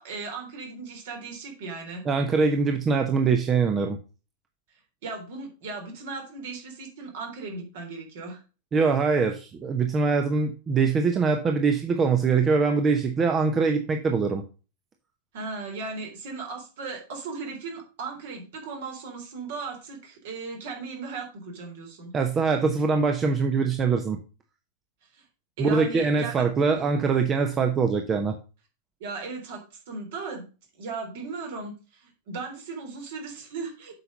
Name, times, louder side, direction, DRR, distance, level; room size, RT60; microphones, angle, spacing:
voice 1, 0.0-2.0 5.0-8.4 15.3-22.1 25.1-25.2 25.6-26.5 29.0-30.5 30.8-33.9, right 4 dB, 55° right, 2 dB, 3.6 m, -37 dB
voice 2, 2.0-4.0 8.7-14.4 22.1-24.2 25.6-28.4, right 5 dB, 25° right, 6 dB, 1.0 m, -23 dB
8.1 x 5.9 x 5.1 m, 0.34 s
figure-of-eight pair, 90°, 0 cm